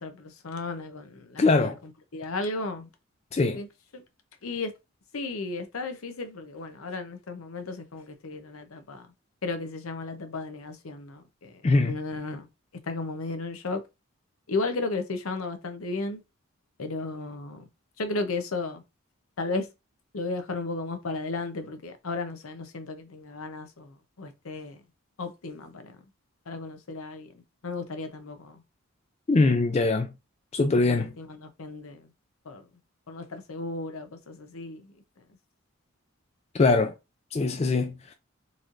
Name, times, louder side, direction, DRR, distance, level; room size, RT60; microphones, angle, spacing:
voice 1, 0.0-2.9 3.5-3.7 3.9-4.0 4.4-4.7 5.1-9.1 9.4-12.5 12.8-13.8 14.5-16.2 16.8-17.6 18.0-18.8 19.4-19.7 20.1-24.8 25.2-26.0 26.5-28.6 29.3-29.5 30.7-32.1 32.4-32.7 33.1-35.2, left 3 dB, 80° left, 0.7 m, -34 dB
voice 2, 1.4-1.8 3.3-3.6 11.6-11.9 29.3-30.1 30.5-31.1 36.5-36.9 37.3-38.1, left 3 dB, 30° left, 0.3 m, -22 dB
4.0 x 3.1 x 2.5 m
head